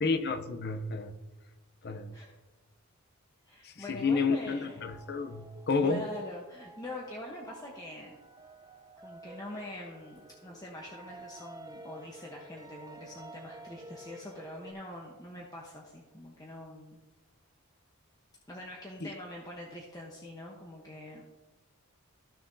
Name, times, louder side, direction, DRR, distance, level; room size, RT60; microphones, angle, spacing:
voice 1, 0.0-1.2 1.8-2.1 3.6-6.0 19.0-19.1, left 4 dB, 45° left, 0.6 m, -30 dB
voice 2, 3.4-4.9 5.8-8.2 9.0-17.0 18.5-21.2, left 1 dB, 15° left, 0.9 m, -44 dB
sound 1, 4.4-14.7, right 2 dB, 15° right, 0.5 m, -51 dB
14.5 x 6.7 x 2.7 m
head